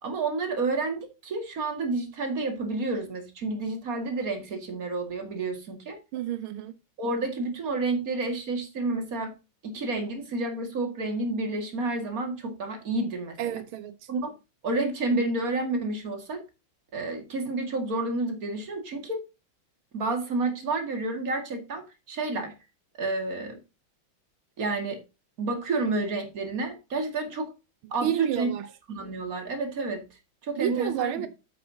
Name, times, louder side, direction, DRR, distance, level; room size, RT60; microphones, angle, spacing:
voice 1, 0.0-6.0 7.0-9.3 9.6-13.6 14.1-14.3 14.6-16.4 16.9-19.2 19.9-22.5 23.0-23.6 24.6-25.0 25.4-27.5 27.9-28.5 28.9-30.0 30.4-31.2, right 3 dB, 45° right, 2.4 m, -30 dB
voice 2, 6.1-6.7 13.4-14.1 28.0-28.6 30.6-31.3, right 11 dB, 85° right, 1.6 m, -30 dB
9.1 x 8.8 x 2.8 m
omnidirectional pair, 2.2 m